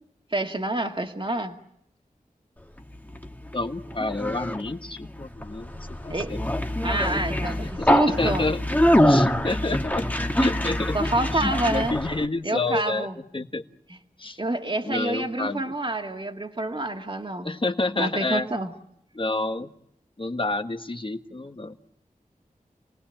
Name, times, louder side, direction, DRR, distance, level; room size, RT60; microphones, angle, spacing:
voice 1, 0.3-1.6 6.1-6.3 6.8-8.5 10.9-12.0 12.4-13.2 13.9-14.0 14.4-17.5 17.9-18.7, right 2 dB, 35° right, 4 dB, 2.1 m, -27 dB
Conversation, 2.8-12.2, left 1 dB, 10° left, 1.5 m, -25 dB
voice 2, 3.5-6.4 7.6-8.6 9.0-10.0 10.3-11.0 11.3-13.1 13.3-13.6 14.2-14.4 14.8-15.7 17.4-18.5 19.1-19.7 20.2-21.8, left 2 dB, 35° left, 8 dB, 1.4 m, -29 dB
28.5 x 19.5 x 9.0 m, 0.75 s
wide cardioid pair, 50°, 14 cm